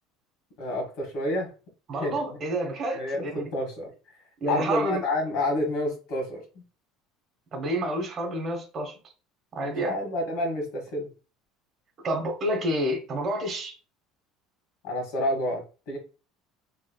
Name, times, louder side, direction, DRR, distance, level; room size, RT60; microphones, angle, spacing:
voice 1, 0.6-1.5 2.0-2.1 2.9-3.9 4.5-6.6 9.6-11.1 14.8-16.0, left 1 dB, 70° left, 1.5 m, -29 dB
voice 2, 1.9-3.5 4.4-5.1 7.5-8.9 9.5-10.0 12.0-13.7, right 1 dB, 35° right, 1.0 m, -29 dB
3.2 x 3.1 x 2.2 m
cardioid pair, 125°, 0 cm